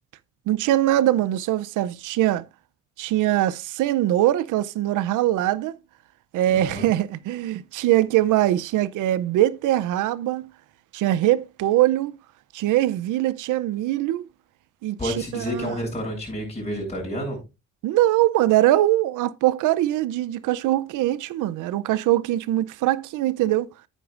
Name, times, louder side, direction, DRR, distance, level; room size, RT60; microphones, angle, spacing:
voice 1, 0.5-2.4 3.0-5.7 6.3-10.5 10.9-12.1 12.5-14.3 14.8-15.7 17.8-23.7, right 14 dB, 85° right, 0.6 m, -22 dB
voice 2, 6.5-6.9 15.0-17.4, equal, 20° left, 6.5 m, -30 dB
9.3 x 9.3 x 2.5 m
cardioid pair, 90°, 30 cm